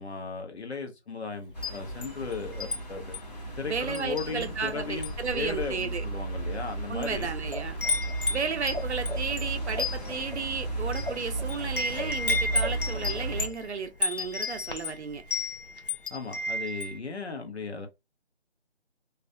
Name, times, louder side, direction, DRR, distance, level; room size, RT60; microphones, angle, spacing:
voice 1, 0.0-3.0 3.6-7.3 16.1-17.9, left 4 dB, 70° left, 0.8 m, -36 dB
Wind chime, 1.5-2.8 3.1-3.4 3.9-4.7 5.0-5.3 6.0-6.1 6.8-7.2 7.5-17.0, left 3 dB, 50° left, 0.4 m, -32 dB
sound 1, 1.5-13.5, right 2 dB, 35° left, 0.8 m, -35 dB
voice 2, 3.7-6.0 6.9-7.8 8.3-15.2, right 5 dB, 75° right, 0.6 m, -33 dB
sound 2, 7.4-8.8 9.1-13.5, left 1 dB, 90° left, 1.2 m, -38 dB
2.4 x 2.1 x 2.5 m
figure-of-eight pair, 180°, 34 cm